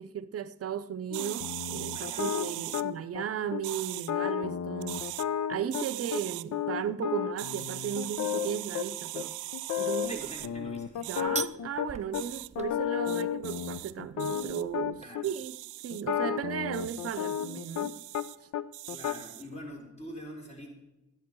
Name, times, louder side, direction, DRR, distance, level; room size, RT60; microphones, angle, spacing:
voice 1, 0.0-5.0 5.5-9.3 9.8-10.2 11.1-15.6 15.8-17.9, right 9 dB, 50° right, 0.8 m, -35 dB
sound 1, 1.1-3.2 3.5-3.6 3.9-6.2 6.5-8.8 9.1-9.2 9.5-10.1 10.4-12.2 12.6-15.2 15.9-18.2 18.5-19.1, left 10 dB, 65° left, 0.7 m, -33 dB
sound 2, 1.1-2.8 3.6-4.1 4.8-5.3 5.7-6.4 7.4-10.5 11.0-11.2 12.1-12.5 13.1-13.9 14.2-14.6 15.2-16.0 16.7-18.4 18.7-19.5, right 18 dB, 80° right, 0.4 m, -40 dB
voice 2, 1.9-2.9 10.1-11.3 15.0-15.3 18.9-20.7, equal, 20° left, 4.2 m, -45 dB
sound 3, 10.0-15.1, right 6 dB, 25° right, 0.5 m, -44 dB
13.5 x 10.5 x 4.7 m
cardioid pair, 90°, 30 cm